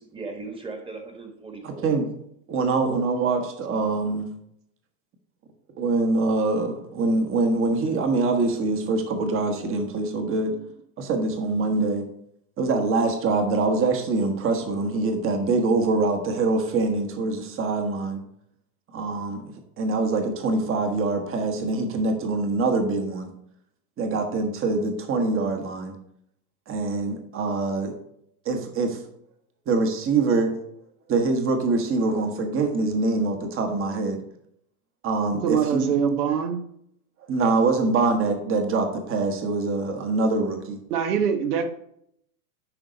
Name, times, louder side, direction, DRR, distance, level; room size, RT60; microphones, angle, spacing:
voice 1, 0.0-1.9 36.3-36.4, right 3 dB, 10° right, 4 dB, 1.4 m, -38 dB
voice 2, 1.6-2.1 2.5-4.2 5.8-10.5 11.0-12.0 12.6-18.2 18.9-23.3 24.0-25.9 26.7-27.9 28.4-29.0 29.7-30.5 31.1-34.2 35.0-35.9 37.3-40.8, right 3 dB, 30° right, 5 dB, 1.2 m, -24 dB
voice 3, 35.3-36.6 40.9-41.7, right 7 dB, 80° right, 7 dB, 1.2 m, -24 dB
10.5 x 3.9 x 3.9 m, 0.72 s
supercardioid pair, 120°, 45 cm